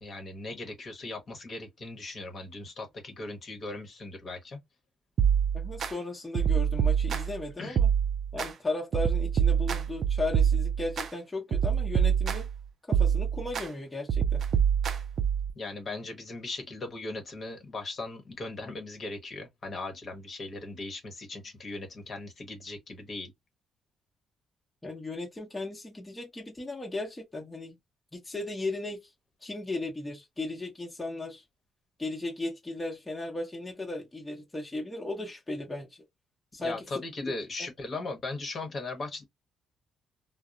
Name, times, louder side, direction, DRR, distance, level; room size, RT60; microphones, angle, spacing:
voice 1, 0.0-4.6 7.6-7.8 15.5-23.3 36.6-39.2, left 2 dB, 45° left, 0.9 m, -38 dB
sound 1, 5.2-5.9 6.3-7.4 7.8-8.5 8.9-11.1 11.5-12.6 12.9-13.7 14.1-15.5, right 8 dB, 60° right, 0.3 m, -26 dB
voice 2, 5.5-7.9 8.3-12.5 12.9-14.4 24.8-27.8 28.1-29.0 29.4-31.4 32.0-35.9 36.5-36.8 37.6-37.7, left 2 dB, 15° left, 0.8 m, -36 dB
2.8 x 2.0 x 2.3 m
cardioid pair, 90°, 0 cm